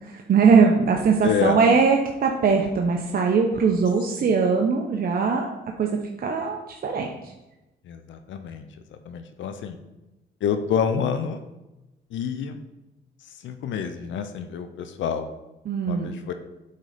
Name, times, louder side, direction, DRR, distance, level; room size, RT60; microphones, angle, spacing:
voice 1, 0.0-5.5 5.8-5.9 6.2-7.3 15.7-16.1, right 5 dB, 50° right, 2 dB, 0.8 m, -21 dB
voice 2, 1.2-1.6 4.2-4.3 7.8-9.8 10.4-11.4 12.1-12.6 13.2-15.3 15.9-16.3, left 7 dB, 75° left, 8 dB, 0.7 m, -28 dB
8.3 x 3.9 x 5.0 m, 0.99 s
cardioid pair, 90°, 20 cm